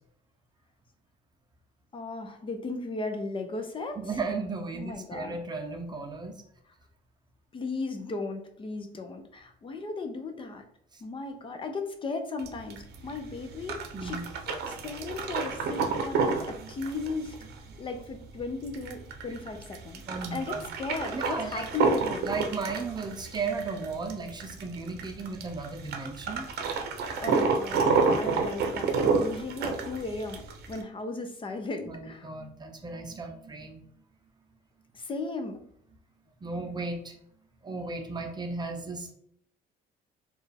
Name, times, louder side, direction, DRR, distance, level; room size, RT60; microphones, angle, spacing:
voice 1, 1.9-4.0 4.8-5.4 7.5-10.6 11.0-14.2 14.5-17.4 17.8-20.0 20.3-22.3 27.2-32.3 34.9-35.6, left 3 dB, 30° left, 6 dB, 0.5 m, -36 dB
voice 2, 4.0-6.3 10.9-11.0 13.9-14.3 16.6-16.7 20.1-20.6 21.1-21.7 22.2-26.7 31.9-33.8 36.4-37.1 37.6-39.1, right 4 dB, 25° right, 4 dB, 0.6 m, -35 dB
sound 1, 12.4-30.8, right 4 dB, 70° right, 0.6 m, -30 dB
4.4 x 2.4 x 3.3 m, 0.66 s
cardioid pair, 110°, 17 cm